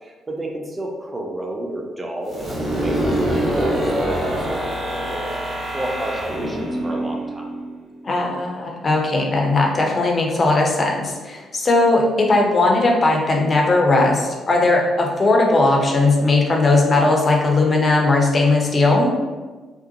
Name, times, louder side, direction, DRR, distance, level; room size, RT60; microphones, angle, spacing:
voice 1, 0.0-7.5, right 1 dB, 25° right, 1 dB, 0.5 m, -31 dB
sound 1, 2.3-8.0, right 1 dB, 40° right, 1.1 m, -24 dB
voice 2, 8.0-19.1, left 2 dB, 35° left, 0 dB, 0.5 m, -18 dB
2.6 x 2.0 x 2.7 m, 1.3 s
figure-of-eight pair, 40°, 0 cm